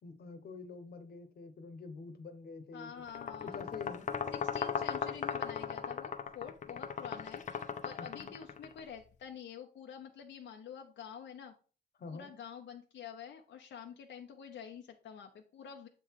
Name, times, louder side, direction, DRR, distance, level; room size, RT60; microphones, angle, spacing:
voice 1, 0.0-2.9 3.2-4.1 8.0-8.3 12.0-12.3, left 4 dB, 60° left, 8 dB, 1.0 m, -47 dB
voice 2, 2.7-3.7 4.3-11.5 12.1-15.9, left 8 dB, 85° left, 4 dB, 0.7 m, -48 dB
sound 1, 3.1-8.8, left 6 dB, 40° left, 0.5 m, -38 dB
7.7 x 3.7 x 4.6 m, 0.38 s
wide cardioid pair, 155°, 19 cm